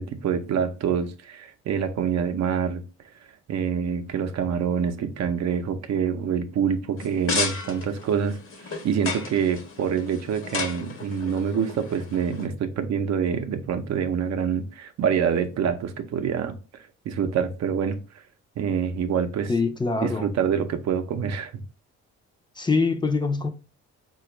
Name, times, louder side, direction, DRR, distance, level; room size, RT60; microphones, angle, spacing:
voice 1, 0.0-2.8 3.5-16.5 17.0-18.0 18.6-19.5 20.0-21.6, right 7 dB, 60° right, 0.6 m, -26 dB
sound 1, 7.0-12.5, left 4 dB, 45° left, 0.8 m, -33 dB
voice 2, 19.5-20.3 22.6-23.5, left 4 dB, 15° left, 0.5 m, -24 dB
4.2 x 2.3 x 2.9 m
cardioid pair, 90°, 30 cm